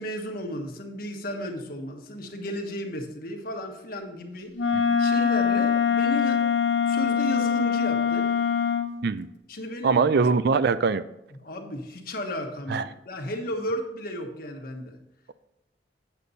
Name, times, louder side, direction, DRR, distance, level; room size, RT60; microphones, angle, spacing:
voice 1, 0.0-4.5 5.0-6.5 6.9-8.3 9.5-10.0 11.3-15.0, left 1 dB, 55° left, 3 dB, 1.2 m, -34 dB
Wind instrument woodwind instrument, 4.5-8.9, left 7 dB, 85° left, 0.7 m, -23 dB
voice 2, 9.8-11.0 12.7-12.8, right 5 dB, 60° right, 14 dB, 0.4 m, -22 dB
8.3 x 6.8 x 4.1 m, 0.83 s
head